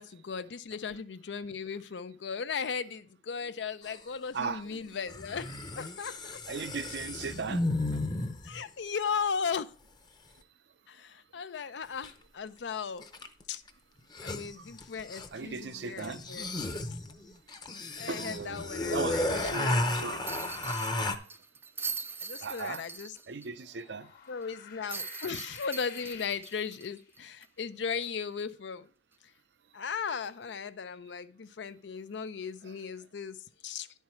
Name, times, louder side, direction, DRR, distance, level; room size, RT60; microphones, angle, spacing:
voice 1, 0.0-6.4 8.4-9.7 10.9-13.0 13.5-13.6 14.2-16.5 18.0-19.8 20.1-20.2 22.2-23.1 24.3-28.9 29.7-33.4 33.6-33.9, left 6 dB, 85° left, 0.5 m, -37 dB
sound 1, 3.8-3.9 5.1-8.6 12.0-12.1 13.0-13.4 13.7-13.8 14.0-15.4 16.0-21.2, left 2 dB, 25° left, 0.7 m, -33 dB
voice 2, 4.3-4.8 6.5-7.6 7.9-8.0 14.6-14.7 15.3-16.2 18.1-20.3 22.4-22.8 23.3-24.1 32.6-32.8, right 5 dB, 80° right, 0.6 m, -37 dB
sound 2, 20.3-23.5 23.8-23.9 24.9-27.6 28.0-28.1 30.2-30.4, right 5 dB, 15° right, 0.4 m, -41 dB
sound 3, 23.5-27.3, left 6 dB, 55° left, 1.3 m, -51 dB
10.5 x 4.6 x 5.7 m
head